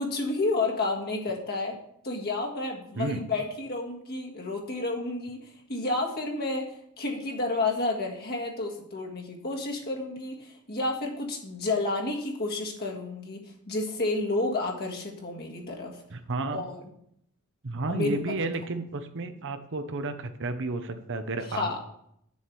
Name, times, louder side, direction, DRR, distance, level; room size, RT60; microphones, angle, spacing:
voice 1, 0.0-1.8 2.0-16.0 16.5-16.8 17.9-18.3 21.5-21.8, left 2 dB, 45° left, 0 dB, 1.7 m, -31 dB
voice 2, 16.1-16.7 17.6-21.8, right 3 dB, 55° right, 8 dB, 0.8 m, -32 dB
8.5 x 7.1 x 4.7 m, 0.71 s
head